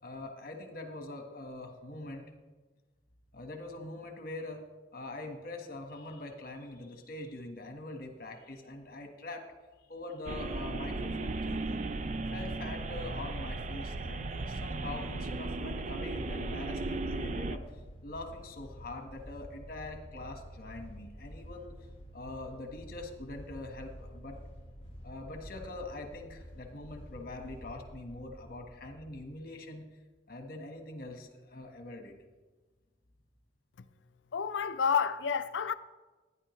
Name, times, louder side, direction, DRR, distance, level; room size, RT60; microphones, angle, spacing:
voice 1, 0.0-2.3 3.3-4.6 4.9-9.5 9.9-11.8 12.3-17.6 18.0-21.7 22.1-24.4 25.0-29.9 30.3-32.2, left 2 dB, 55° left, 1.5 m, -43 dB
sound 1, 10.3-17.6, right 2 dB, 40° right, 0.4 m, -36 dB
sound 2, 12.7-29.3, equal, 30° left, 1.4 m, -49 dB
voice 2, 34.3-35.7, left 6 dB, 85° left, 0.5 m, -29 dB
16.5 x 10.0 x 3.2 m
head